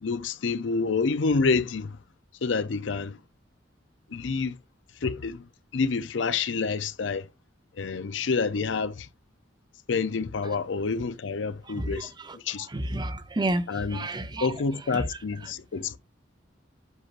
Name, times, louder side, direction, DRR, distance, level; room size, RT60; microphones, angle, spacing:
voice 1, 0.0-2.0 2.4-3.2 4.1-4.6 5.0-5.4 5.7-7.2 7.8-9.1 9.9-12.7 13.7-14.1 14.4-16.0, left 4 dB, 75° left, 0.6 m, -28 dB
voice 2, 12.7-13.6 13.9-14.5 14.9-15.0, right 1 dB, 25° right, 0.7 m, -29 dB
8.0 x 6.0 x 2.5 m
head